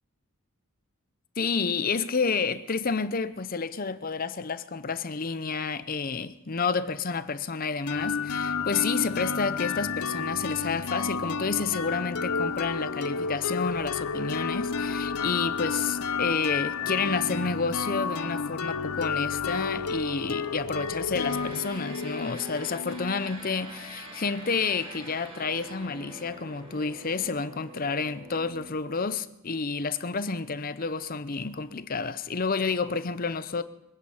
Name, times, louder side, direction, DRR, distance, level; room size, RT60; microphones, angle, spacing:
voice 1, 1.4-33.6, left 5 dB, 40° left, 0.7 m, -30 dB
sound 1, 7.9-23.5, left 5 dB, 90° left, 0.8 m, -31 dB
sound 2, 21.2-28.7, right 1 dB, 25° right, 2.2 m, -45 dB
23.0 x 9.9 x 5.6 m
head